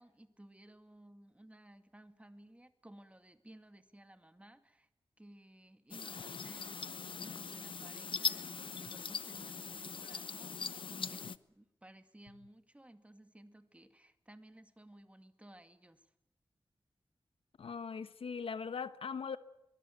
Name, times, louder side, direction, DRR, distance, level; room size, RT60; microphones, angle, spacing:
voice 1, 0.0-4.9 5.2-16.1, right 1 dB, 15° right, 2.2 m, -58 dB
sound 1, 5.9-11.4, left 5 dB, 65° left, 0.8 m, -41 dB
voice 2, 17.6-19.4, left 6 dB, 90° left, 1.1 m, -40 dB
23.0 x 21.0 x 9.3 m
wide cardioid pair, 80°, 9 cm